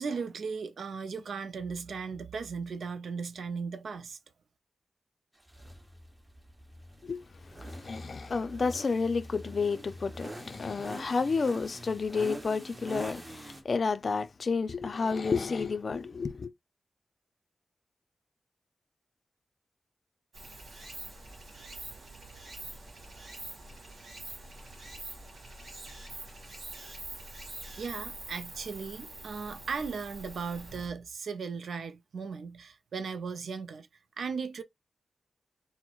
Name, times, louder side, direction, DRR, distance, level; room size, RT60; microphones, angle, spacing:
voice 1, 0.0-4.2 27.8-33.9 34.2-34.6, right 5 dB, 85° right, 0.4 m, -37 dB
sound 1, 5.5-13.6, equal, 20° right, 0.7 m, -45 dB
voice 2, 7.0-16.5, left 4 dB, 50° left, 0.4 m, -31 dB
Stream, 20.3-30.9, right 2 dB, 65° right, 1.7 m, -45 dB
4.4 x 2.0 x 2.3 m
wide cardioid pair, 115°, 0 cm